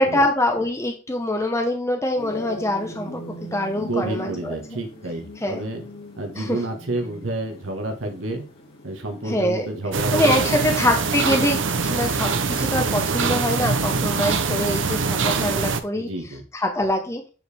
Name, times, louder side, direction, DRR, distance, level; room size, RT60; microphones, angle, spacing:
voice 1, 0.0-3.2 3.5-4.6 5.4-5.6 6.4-6.6 9.2-9.7 10.1-16.1 16.5-17.2, left 1 dB, 15° left, 3 dB, 0.9 m, -24 dB
sound 1, 2.2-10.9, equal, 50° left, 3.0 m, -40 dB
voice 2, 3.8-5.8 6.2-8.4 8.8-10.8 15.9-16.4, right 2 dB, 85° right, 4 dB, 1.6 m, -30 dB
sound 2, 9.9-15.8, right 4 dB, 70° right, 0.8 m, -23 dB
9.0 x 4.8 x 3.5 m, 0.34 s
head